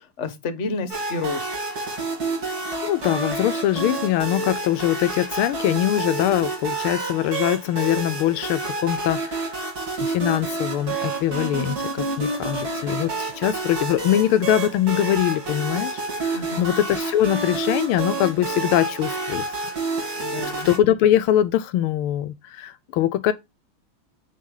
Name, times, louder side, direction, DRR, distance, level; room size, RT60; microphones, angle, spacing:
voice 1, 0.0-1.5 16.3-16.7 20.2-20.7, left 3 dB, 40° left, 1.3 m, -30 dB
sound 1, 0.9-20.8, right 3 dB, 45° right, 3.1 m, -29 dB
voice 2, 2.8-9.6 10.0-19.4 20.0-20.2 20.6-23.3, left 12 dB, 80° left, 1.4 m, -22 dB
9.3 x 5.0 x 3.7 m
omnidirectional pair, 2.4 m